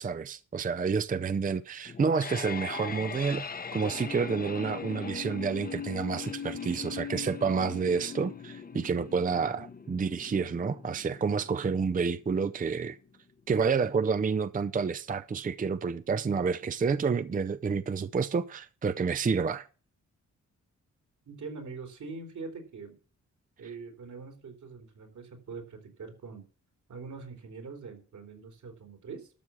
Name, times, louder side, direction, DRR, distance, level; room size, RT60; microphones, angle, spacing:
voice 1, 0.0-3.5 3.7-13.0 13.5-19.7, right 5 dB, 30° right, 0.5 m, -29 dB
sound 1, 1.9-12.9, left 6 dB, 30° left, 0.8 m, -40 dB
voice 2, 21.3-23.0 23.6-26.4 26.9-29.3, right 4 dB, 80° right, 3.7 m, -43 dB
12.5 x 7.0 x 6.2 m
wide cardioid pair, 120°, 29 cm